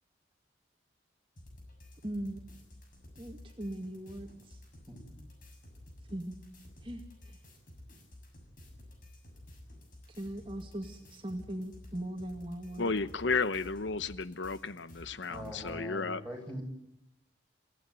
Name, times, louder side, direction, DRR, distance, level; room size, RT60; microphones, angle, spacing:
sound 1, 1.4-15.8, left 1 dB, 45° left, 6.8 m, -53 dB
voice 1, 2.0-2.4 3.2-4.6 6.1-6.3 6.8-7.4 10.1-12.9, right 1 dB, 30° right, 3 dB, 2.2 m, -40 dB
voice 2, 4.9-5.2 15.3-16.6, equal, 5° left, 1 dB, 7.7 m, -42 dB
voice 3, 12.8-16.2, left 4 dB, 80° left, 14 dB, 0.9 m, -33 dB
28.5 x 16.0 x 9.4 m, 0.84 s
head